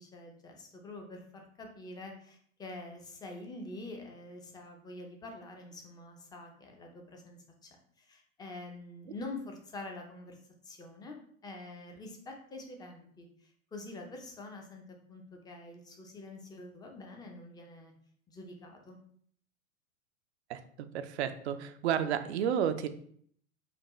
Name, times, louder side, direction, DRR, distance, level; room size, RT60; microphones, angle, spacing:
voice 1, 0.0-7.7 8.0-10.4 10.6-11.2 11.4-14.8 15.1-17.9 18.3-19.0, left 2 dB, 10° left, 2 dB, 0.6 m, -46 dB
voice 2, 20.5-22.9, right 9 dB, 55° right, 10 dB, 0.6 m, -32 dB
5.8 x 2.2 x 3.0 m, 0.62 s
figure-of-eight pair, 100°, 39 cm